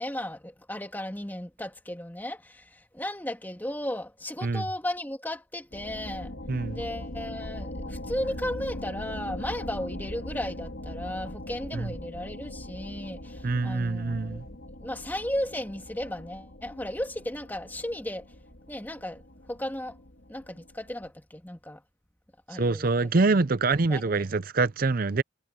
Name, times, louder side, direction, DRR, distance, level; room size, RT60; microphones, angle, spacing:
voice 1, 0.0-6.3 6.7-14.4 14.8-18.2 18.7-19.2 19.5-20.0 20.3-21.8 22.5-23.4 23.8-24.2, left 1 dB, 10° left, 2.2 m, -35 dB
sound 1, 5.7-21.1, left 1 dB, 65° left, 3.3 m, -41 dB
voice 2, 13.4-14.4 22.5-25.2, right 3 dB, 50° right, 0.6 m, -25 dB
head